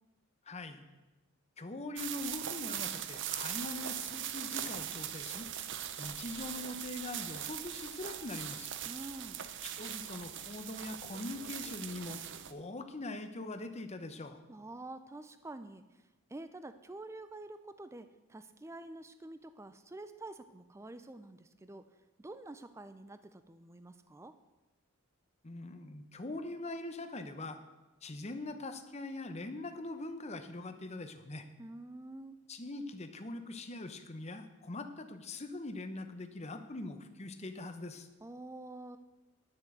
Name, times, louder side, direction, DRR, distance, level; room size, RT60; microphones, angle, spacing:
voice 1, 0.4-0.9 1.6-5.5 6.0-8.7 9.6-12.2 12.5-14.4 25.4-27.6 28.0-31.5 32.5-38.1, left 2 dB, 30° left, 8 dB, 0.8 m, -42 dB
sound 1, 2.0-12.5, right 10 dB, 55° right, 0.6 m, -40 dB
voice 2, 8.8-9.5 14.5-21.9 22.2-24.4 31.6-32.4 38.2-39.0, right 2 dB, 10° right, 11 dB, 0.4 m, -48 dB
10.5 x 6.3 x 7.7 m, 1.1 s
head